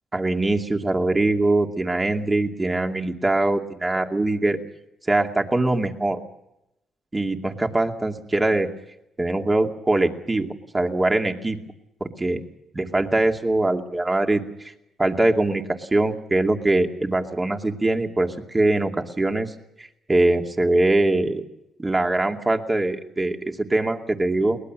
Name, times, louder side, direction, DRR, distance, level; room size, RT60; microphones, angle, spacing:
voice 1, 0.1-4.6 5.1-6.2 7.1-8.7 9.2-11.6 12.0-12.4 12.7-14.4 15.0-19.5 19.8-21.4 21.8-24.6, right 2 dB, 20° right, 4 dB, 2.5 m, -22 dB
23.0 x 20.0 x 6.4 m, 0.84 s
cardioid pair, 90°, 0 cm